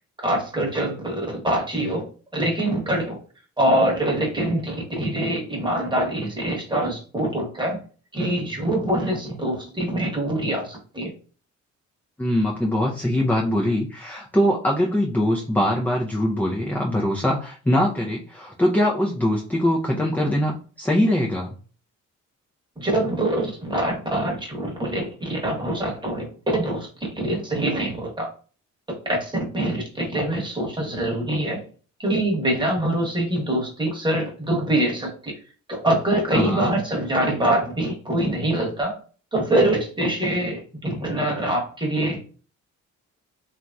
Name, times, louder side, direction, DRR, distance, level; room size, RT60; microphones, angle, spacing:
voice 1, 0.2-2.0 2.3-3.2 3.6-7.8 8.1-11.1 22.8-26.9 27.1-28.3 29.2-31.6 32.0-35.1 35.7-38.9 39.3-42.2, right 1 dB, 15° right, -1 dB, 1.1 m, -24 dB
voice 2, 12.2-21.5 36.3-36.8, left 1 dB, 5° left, -1 dB, 0.4 m, -22 dB
2.9 x 2.6 x 2.2 m, 0.40 s
cardioid pair, 90°, 30 cm